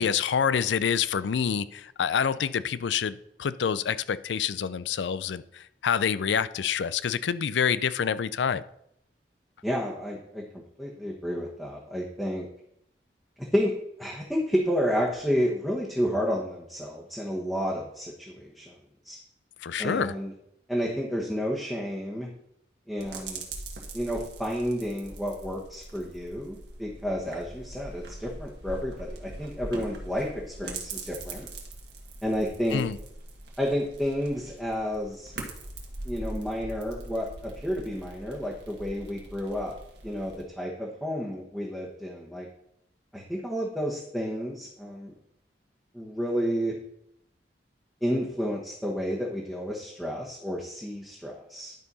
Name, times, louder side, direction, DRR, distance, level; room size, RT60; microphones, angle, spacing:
voice 1, 0.0-8.6 19.6-20.1 32.7-33.0, left 7 dB, 90° left, 16 dB, 0.4 m, -27 dB
voice 2, 9.6-10.4 10.8-12.5 13.4-18.7 19.0-19.2 19.8-20.3 20.7-22.3 22.9-23.4 23.9-31.5 32.2-32.8 33.6-35.3 36.0-39.8 40.0-42.5 43.1-45.1 45.9-46.8 48.0-51.7, equal, ahead, -3 dB, 1.2 m, -31 dB
sound 1, 23.0-40.4, right 2 dB, 75° right, 1.8 m, -42 dB
11.0 x 4.5 x 5.5 m, 0.75 s
head